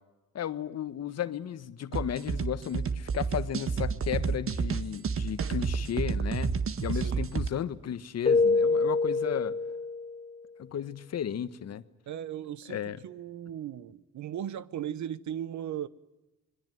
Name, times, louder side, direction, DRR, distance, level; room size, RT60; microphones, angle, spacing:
voice 1, 0.3-6.5 6.8-9.5 10.6-11.8 12.7-13.0, left 9 dB, 55° left, 1.4 m, -34 dB
sound 1, 1.9-7.5, right 5 dB, 45° right, 1.6 m, -30 dB
voice 2, 6.9-7.3 12.1-15.9, right 10 dB, 70° right, 1.1 m, -37 dB
Keyboard (musical), 8.3-10.3, left 3 dB, 20° left, 1.1 m, -26 dB
26.5 x 22.0 x 9.4 m
cardioid pair, 90°, 30 cm